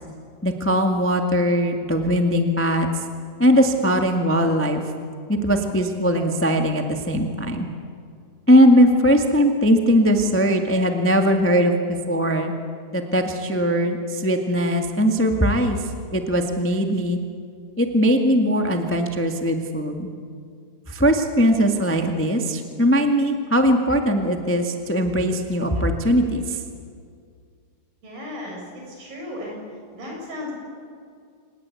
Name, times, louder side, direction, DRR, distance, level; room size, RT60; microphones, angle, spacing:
voice 1, 0.4-2.9 3.4-4.8 5.3-7.7 8.5-12.5 12.9-15.8 16.1-17.2 17.8-20.1 20.9-26.6, equal, 10° left, 4 dB, 0.5 m, -20 dB
voice 2, 28.0-29.6 29.9-30.5, left 1 dB, 85° right, -1 dB, 8.4 m, -35 dB
26.5 x 20.0 x 8.4 m, 2.2 s
omnidirectional pair, 3.9 m